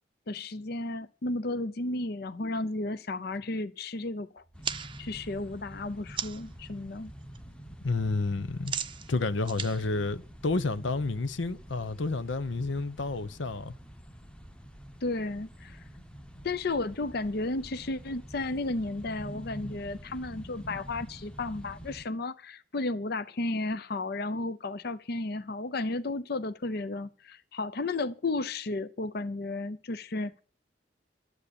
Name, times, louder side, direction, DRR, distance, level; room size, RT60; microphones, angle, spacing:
voice 1, 0.3-4.4 4.8-7.1 15.0-15.8 16.4-30.4, left 2 dB, 55° left, 0.6 m, -33 dB
sound 1, 4.4-6.6 6.9-7.4 7.6-10.9, right 8 dB, 25° right, 0.6 m, -39 dB
sound 2, 4.5-22.0, equal, 5° left, 0.8 m, -47 dB
voice 2, 7.8-8.8 9.1-13.7, left 3 dB, 90° left, 0.9 m, -30 dB
12.5 x 8.1 x 8.6 m
head